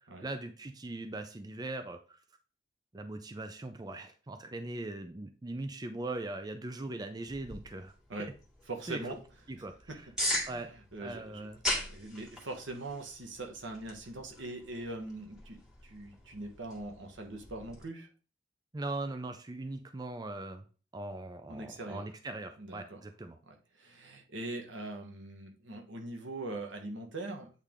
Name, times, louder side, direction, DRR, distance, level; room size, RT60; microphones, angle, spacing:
voice 1, 0.0-2.2 2.9-7.9 8.9-9.0 9.5-10.1 10.5-10.7 11.0-11.6 18.7-20.7 20.9-23.4, right 2 dB, 20° right, 8 dB, 0.5 m, -40 dB
sound 1, 7.3-17.8, left 1 dB, 5° right, 2.1 m, -41 dB
voice 2, 8.7-9.2 9.9-18.1 21.5-22.0 22.6-23.0 23.5-27.5, right 2 dB, 85° right, 3 dB, 1.3 m, -42 dB
8.3 x 3.4 x 3.7 m, 0.36 s
head